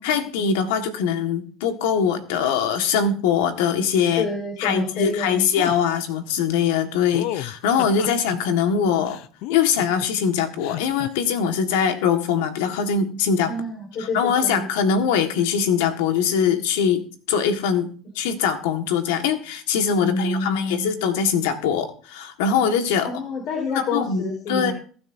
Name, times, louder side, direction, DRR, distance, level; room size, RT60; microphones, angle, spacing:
voice 1, 0.0-4.3 4.6-9.2 9.5-13.5 14.0-23.1 23.7-24.7, left 7 dB, 85° left, 6 dB, 1.7 m, -22 dB
voice 2, 4.2-5.5 13.5-14.7 20.0-20.9 23.0-24.7, left 2 dB, 50° left, 1 dB, 4.7 m, -28 dB
sound 1, 5.5-5.8 7.1-8.4 9.1-10.1 10.6-11.1, left 13 dB, 70° left, 0.6 m, -32 dB
22.0 x 9.4 x 2.7 m, 0.42 s
supercardioid pair, 110°, 0 cm